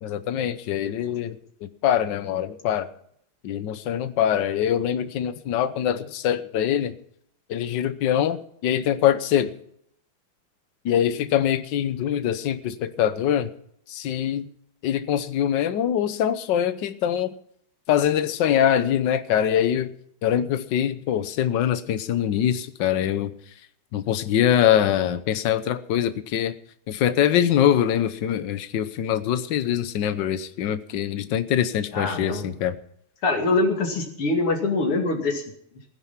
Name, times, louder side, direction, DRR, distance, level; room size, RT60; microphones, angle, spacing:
voice 1, 0.0-2.9 3.4-6.9 7.5-9.5 10.8-13.5 13.9-14.5 14.8-17.3 17.9-19.9 20.2-23.3 23.9-26.5 26.9-32.8, left 10 dB, 60° left, 12 dB, 1.5 m, -23 dB
voice 2, 31.9-32.5 33.2-35.4, left 2 dB, 90° left, 2 dB, 3.4 m, -24 dB
16.5 x 10.5 x 5.7 m, 0.68 s
omnidirectional pair, 2.4 m